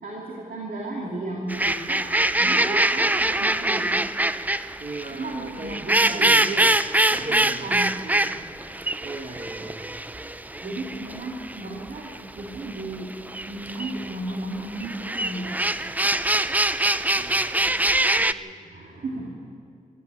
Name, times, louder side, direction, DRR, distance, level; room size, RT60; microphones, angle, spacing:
voice 1, 0.0-2.1 2.4-4.0 5.1-6.4 7.0-8.5 10.6-13.2 13.5-15.6 18.6-19.3, right 2 dB, 85° right, -3 dB, 2.9 m, -34 dB
voice 2, 1.0-1.7 4.8-6.8 7.1-7.8 9.0-10.0 17.1-18.6, right 3 dB, 45° right, 2 dB, 1.6 m, -37 dB
sound 1, 1.5-18.3, right 1 dB, 10° right, 0.5 m, -24 dB
23.5 x 14.0 x 8.6 m, 2.2 s
wide cardioid pair, 95°, 15 cm